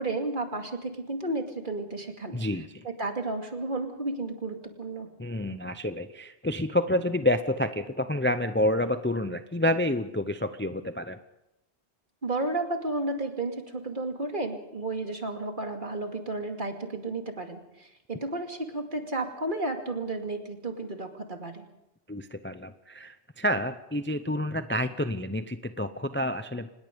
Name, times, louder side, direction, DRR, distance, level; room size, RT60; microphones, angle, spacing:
voice 1, 0.0-2.4 2.8-5.1 12.2-21.6, right 2 dB, 45° right, 4 dB, 2.6 m, -32 dB
voice 2, 2.3-2.8 5.2-11.2 22.1-26.7, left 1 dB, 10° left, 10 dB, 0.6 m, -29 dB
25.5 x 20.0 x 5.3 m, 0.90 s
omnidirectional pair, 1.2 m